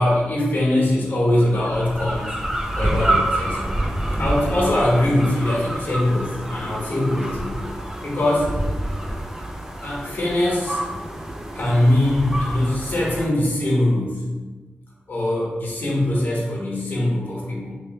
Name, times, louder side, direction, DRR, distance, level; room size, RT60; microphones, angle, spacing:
voice 1, 0.0-3.7 4.2-7.6 8.0-8.5 9.8-10.8 11.5-14.2 15.1-17.8, left 1 dB, 55° left, -4 dB, 1.0 m, -22 dB
sound 1, 1.4-13.3, right 1 dB, 10° right, 0.5 m, -27 dB
3.2 x 2.4 x 3.2 m, 1.3 s
cardioid pair, 60°, 4 cm